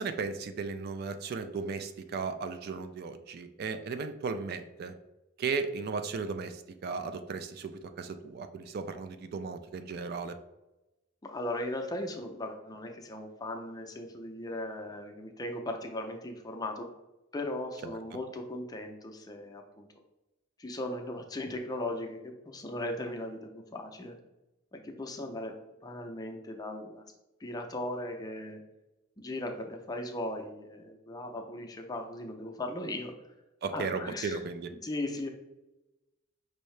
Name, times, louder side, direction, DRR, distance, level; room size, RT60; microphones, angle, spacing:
voice 1, 0.0-4.9 5.4-10.4 17.8-17.9 33.6-34.7, right 4 dB, 50° right, 9 dB, 0.3 m, -36 dB
voice 2, 11.2-16.9 17.3-19.9 20.6-24.2 24.7-25.6 25.8-27.0 27.4-28.6 29.2-33.1 33.7-34.4 34.8-35.3, left 1 dB, 20° left, 3 dB, 0.5 m, -38 dB
5.3 x 2.7 x 3.2 m, 0.97 s
head